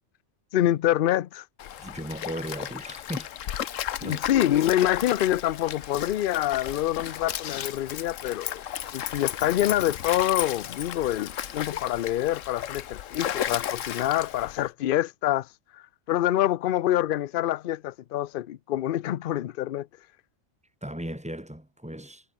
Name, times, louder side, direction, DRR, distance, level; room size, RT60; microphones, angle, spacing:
voice 1, 0.5-1.4 4.0-8.6 8.9-15.5 16.1-19.9, left 13 dB, 55° left, 0.6 m, -26 dB
Stream, 1.6-14.7, left 10 dB, 90° left, 1.2 m, -34 dB
voice 2, 1.8-3.3 4.0-4.3 20.8-22.2, right 1 dB, 5° right, 4.8 m, -36 dB
omnidirectional pair, 1.3 m